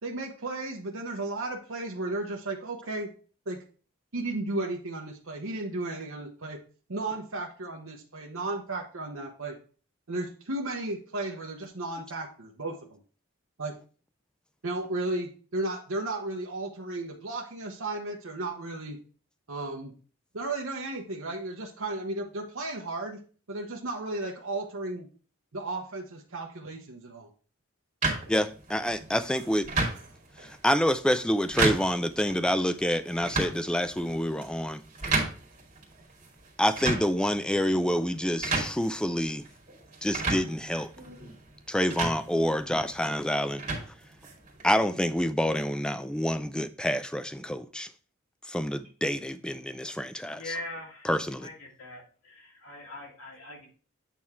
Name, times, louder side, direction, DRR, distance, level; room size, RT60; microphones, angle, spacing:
voice 1, 0.0-3.1 3.5-3.6 4.1-6.6 6.9-9.6 10.1-13.0 13.6-13.8 14.6-19.0 19.5-19.9 20.3-23.2 23.5-25.1 25.5-27.3, right 2 dB, 70° right, 0.9 m, -34 dB
sound 1, 28.0-44.7, right 3 dB, 35° right, 2.3 m, -34 dB
voice 2, 28.3-29.7 30.4-34.8 36.6-39.4 40.0-40.9 41.7-43.6 44.6-47.9 48.5-50.6 51.0-51.5, equal, 5° left, 0.3 m, -27 dB
voice 3, 50.3-51.1 51.4-53.7, left 2 dB, 80° left, 2.8 m, -41 dB
8.5 x 3.6 x 4.3 m
head